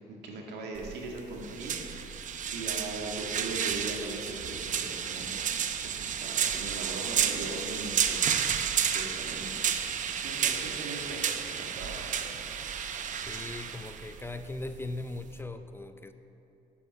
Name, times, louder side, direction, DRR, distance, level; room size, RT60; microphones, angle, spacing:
voice 1, 0.1-2.1 2.5-8.2 8.9-9.6 10.1-12.5, right 2 dB, 80° right, 0 dB, 2.1 m, -40 dB
sound 1, 0.8-15.4, right 8 dB, 50° right, 0.7 m, -32 dB
voice 2, 13.3-16.1, left 2 dB, 15° left, 9 dB, 0.5 m, -39 dB
8.9 x 8.5 x 8.0 m, 2.7 s
cardioid pair, 110°, 17 cm